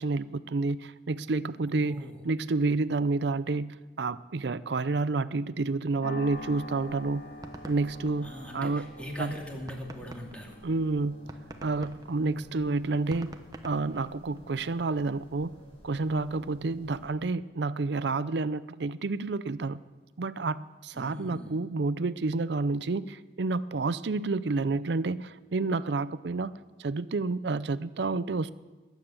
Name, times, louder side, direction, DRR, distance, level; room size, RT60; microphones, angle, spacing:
voice 1, 0.0-7.2 7.7-8.9 9.2-9.3 10.6-11.2 11.6-13.4 13.6-15.5 15.8-19.8 20.2-26.5 26.8-28.5, right 3 dB, 70° right, 15 dB, 0.5 m, -29 dB
voice 2, 1.7-2.2 8.2-10.6 20.9-21.6, equal, 5° left, -1 dB, 2.6 m, -41 dB
sound 1, 6.0-14.5, left 1 dB, 55° left, 0.9 m, -47 dB
sound 2, 6.2-17.1, equal, 30° left, 5.3 m, -53 dB
sound 3, 6.8-8.9 9.3-9.4 9.7-14.6, right 1 dB, 20° right, 0.9 m, -46 dB
20.0 x 9.0 x 7.3 m, 1.2 s
head